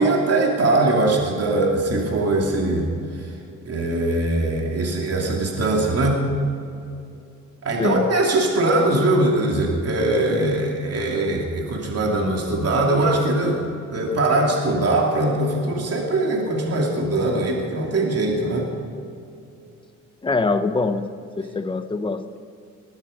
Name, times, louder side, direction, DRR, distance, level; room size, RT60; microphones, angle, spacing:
voice 1, 0.0-2.9 3.2-3.3 3.6-6.3 7.6-13.7 13.9-18.7, right 2 dB, 55° right, 0 dB, 2.9 m, -21 dB
voice 2, 7.8-8.1 20.2-21.1 21.4-22.4, left 3 dB, 15° left, 10 dB, 1.0 m, -24 dB
21.0 x 13.0 x 5.2 m, 2.6 s
cardioid pair, 90°, 30 cm